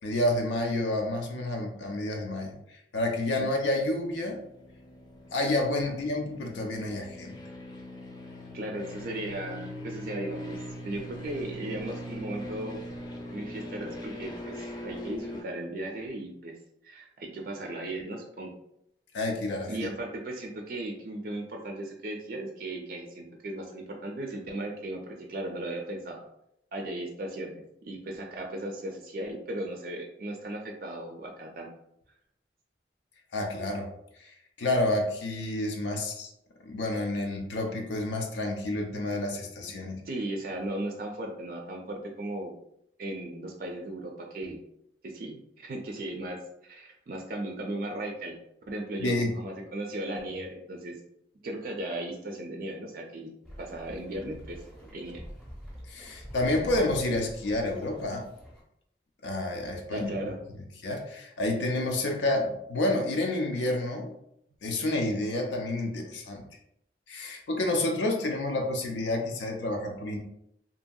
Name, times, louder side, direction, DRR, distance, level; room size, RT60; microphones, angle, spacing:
voice 1, 0.0-4.4 5.3-7.4 19.1-19.9 33.3-33.9 34.2-36.3 36.6-40.0 49.0-49.3 55.9-58.3 59.2-60.1 60.8-64.1 64.6-66.4 67.1-70.2, left 1 dB, 85° left, 2 dB, 0.5 m, -29 dB
sound 1, 3.8-15.4, left 1 dB, 25° left, 0.4 m, -41 dB
voice 2, 8.5-12.8 13.3-16.5 16.8-18.5 19.7-26.2 26.7-27.5 27.8-31.7 40.0-42.5 43.0-44.6 45.0-46.4 46.6-48.4 48.7-51.0 51.4-53.3 53.6-54.6 54.9-55.2 59.9-60.4, right 1 dB, 50° right, 1 dB, 0.4 m, -36 dB
sound 2, 53.4-58.6, equal, 5° left, 0.7 m, -45 dB
2.8 x 2.6 x 2.2 m, 0.77 s
head